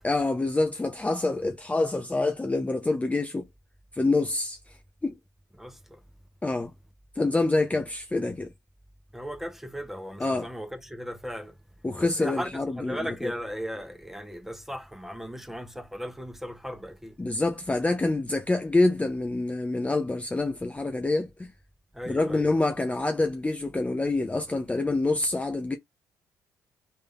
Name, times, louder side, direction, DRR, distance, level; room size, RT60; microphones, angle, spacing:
voice 1, 0.0-3.4 3.9-4.6 5.0-5.1 6.4-6.7 7.2-8.5 10.2-10.5 11.8-13.3 17.2-21.5 22.1-25.8, left 2 dB, 15° left, 0.6 m, -26 dB
voice 2, 5.6-6.0 9.1-11.5 12.0-17.2 21.9-22.5, equal, 5° right, 1.0 m, -37 dB
3.2 x 2.6 x 3.6 m
figure-of-eight pair, 45°, 9 cm